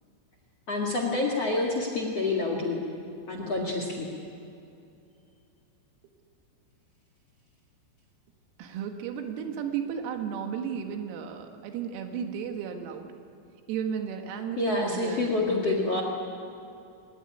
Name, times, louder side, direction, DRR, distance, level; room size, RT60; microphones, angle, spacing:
voice 1, 0.7-2.8 3.3-4.1 14.6-16.0, left 2 dB, 50° left, 1 dB, 2.0 m, -27 dB
voice 2, 8.6-13.1 13.7-16.0, right 7 dB, 85° right, 5 dB, 4.4 m, -34 dB
24.0 x 19.0 x 9.9 m, 2.7 s
omnidirectional pair, 6.0 m